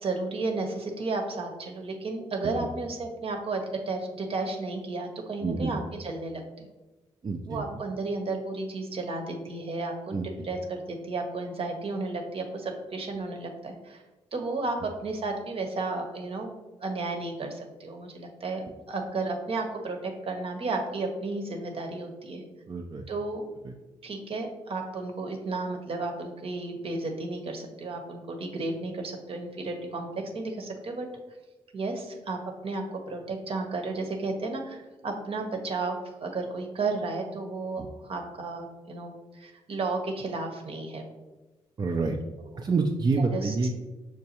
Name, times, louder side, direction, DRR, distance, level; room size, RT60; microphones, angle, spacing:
voice 1, 0.0-6.7 7.4-10.1 10.4-14.0 14.3-16.5 16.8-22.4 23.1-23.4 24.0-30.1 30.3-31.1 31.7-41.1 42.5-42.6 43.3-43.5, right 3 dB, 50° right, 3 dB, 0.8 m, -33 dB
voice 2, 5.4-5.7 7.2-7.6 10.1-10.5 22.7-23.0 23.6-23.7 37.8-37.9 41.8-42.2 42.6-43.8, right 4 dB, 35° right, 2 dB, 0.4 m, -28 dB
5.9 x 2.2 x 2.8 m, 1.1 s
supercardioid pair, 50°, 12 cm